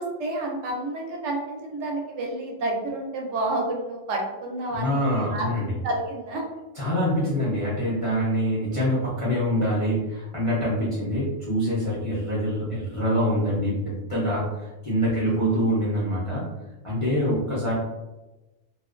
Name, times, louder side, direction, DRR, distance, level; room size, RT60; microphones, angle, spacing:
voice 1, 0.0-5.5 5.8-6.4 15.1-15.3, right 2 dB, 70° right, 0 dB, 0.9 m, -30 dB
voice 2, 4.7-5.7 6.8-16.4 16.8-17.7, equal, 45° left, -8 dB, 0.4 m, -25 dB
2.4 x 2.1 x 2.4 m, 1.1 s
omnidirectional pair, 1.3 m